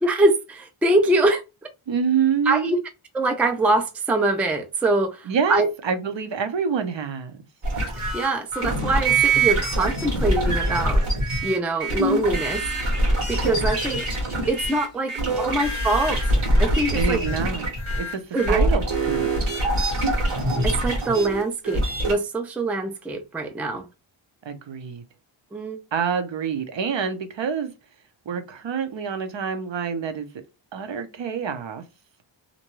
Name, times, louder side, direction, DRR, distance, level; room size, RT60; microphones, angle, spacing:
voice 1, 0.0-1.4 2.5-2.8 3.1-5.7 8.1-11.0 11.4-12.6 13.3-14.1 14.5-16.2 16.6-17.2 18.3-18.7 20.6-23.9 25.5-25.8, right 2 dB, 5° right, 0.3 m, -23 dB
voice 2, 1.9-2.7 5.3-7.4 15.2-15.4 16.9-17.6 18.0-19.3 24.5-25.0 25.9-27.7 28.3-30.3 30.7-31.8, right 6 dB, 65° right, 0.7 m, -27 dB
sound 1, 7.6-22.1, right 2 dB, 80° right, 1.3 m, -24 dB
2.6 x 2.2 x 3.0 m
wide cardioid pair, 95°, 48 cm